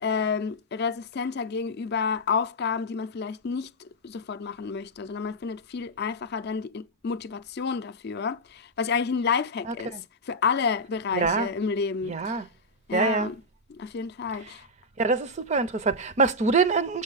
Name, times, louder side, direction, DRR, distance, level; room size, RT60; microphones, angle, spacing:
voice 1, 0.0-10.0 10.3-12.4 12.9-13.4 13.7-14.7, left 5 dB, 50° left, 0.4 m, -30 dB
voice 2, 11.1-11.5 12.0-12.4 12.9-13.3 15.0-17.0, right 4 dB, 35° right, 0.5 m, -24 dB
7.0 x 5.3 x 4.0 m
head